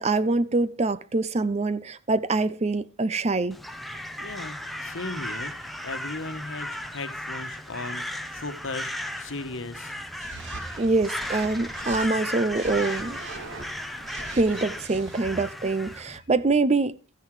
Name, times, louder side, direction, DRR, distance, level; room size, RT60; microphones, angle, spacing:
voice 1, 0.0-3.6 10.8-13.2 14.4-17.0, right 3 dB, 30° right, 0.6 m, -24 dB
Crow, 3.5-16.2, left 1 dB, ahead, 0.9 m, -36 dB
voice 2, 4.2-8.0 8.3-9.9, left 3 dB, 75° left, 1.4 m, -37 dB
sound 1, 10.2-12.1 12.5-15.2, right 3 dB, 60° right, 2.4 m, -41 dB
14.0 x 9.9 x 4.9 m
head